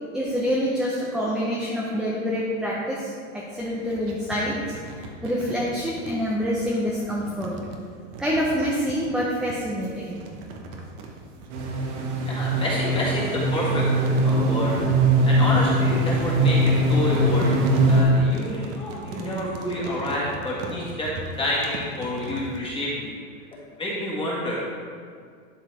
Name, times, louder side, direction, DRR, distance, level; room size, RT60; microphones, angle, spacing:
voice 1, 0.1-4.6 4.9-7.6 8.2-10.2, equal, ahead, -5 dB, 0.7 m, -26 dB
sound 1, 3.5-22.6, right 3 dB, 40° right, 1.0 m, -40 dB
sound 2, 11.5-18.0, right 1 dB, 65° right, 1.7 m, -21 dB
voice 2, 12.3-14.8 15.2-21.1 21.4-23.1 23.8-24.6, left 1 dB, 15° left, -6 dB, 1.8 m, -28 dB
11.5 x 4.6 x 3.4 m, 2.1 s
supercardioid pair, 130°, 38 cm